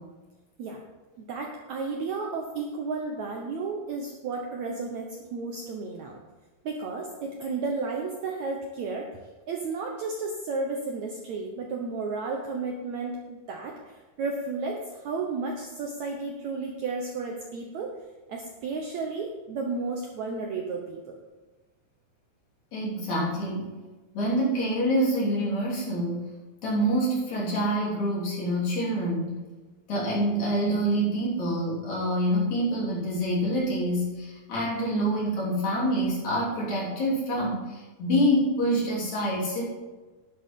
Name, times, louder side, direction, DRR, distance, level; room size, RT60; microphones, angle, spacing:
voice 1, 1.2-6.2 6.6-17.9 18.3-21.2, right 4 dB, 70° right, 1 dB, 1.9 m, -33 dB
voice 2, 22.7-23.8 24.1-26.3 26.6-29.3 29.9-39.6, equal, 50° left, -5 dB, 4.3 m, -26 dB
12.0 x 11.0 x 3.7 m, 1.2 s
omnidirectional pair, 4.3 m